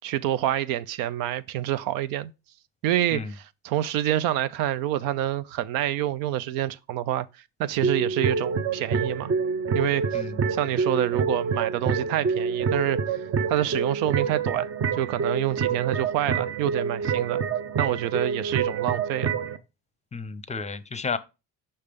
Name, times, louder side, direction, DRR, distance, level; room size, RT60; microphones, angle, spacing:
voice 1, 0.0-2.3 2.8-7.3 7.6-9.3 9.7-10.2 10.5-13.2 13.5-17.4 17.8-19.4, right 12 dB, 80° right, 0.5 m, -27 dB
sound 1, 7.8-19.6, right 5 dB, 40° right, 0.7 m, -27 dB
voice 2, 20.1-21.2, left 4 dB, 20° left, 0.6 m, -32 dB
5.6 x 3.3 x 5.1 m
supercardioid pair, 90°, 34 cm